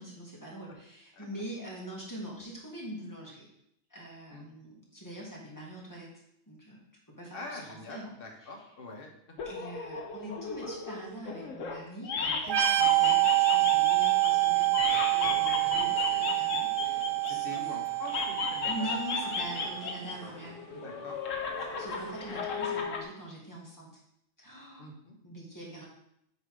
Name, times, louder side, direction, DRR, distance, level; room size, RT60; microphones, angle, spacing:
voice 1, 0.0-3.5 3.9-6.1 6.5-6.8 7.2-8.1 8.4-8.5 9.4-17.8 18.7-20.6 21.8-23.9 24.4-24.9 25.2-25.8, right 1 dB, 15° left, -4 dB, 1.9 m, -43 dB
voice 2, 7.3-9.4 17.2-18.9 20.7-21.2 21.7-21.8 24.8-25.1, left 2 dB, 45° left, 0 dB, 1.4 m, -44 dB
sound 1, 9.4-11.8 12.0-17.6 18.0-20.1 20.4-23.0, left 5 dB, 70° left, 1.2 m, -34 dB
sound 2, 12.4-19.9, right 21 dB, 65° right, 0.5 m, -27 dB
sound 3, 12.8-22.4, right 1 dB, 40° right, 1.6 m, -51 dB
8.2 x 3.6 x 5.4 m, 0.76 s
omnidirectional pair, 1.4 m